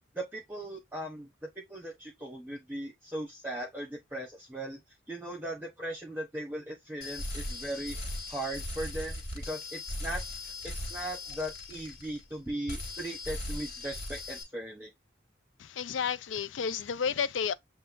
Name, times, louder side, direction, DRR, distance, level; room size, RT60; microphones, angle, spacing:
voice 1, 0.1-4.8 5.1-8.0 8.3-14.9, right 1 dB, 10° right, 0.9 m, -38 dB
sound 1, 7.0-12.4 12.7-14.4, left 1 dB, 55° left, 2.1 m, -39 dB
voice 2, 15.6-17.5, left 7 dB, 90° left, 0.4 m, -31 dB
7.5 x 2.5 x 2.6 m
head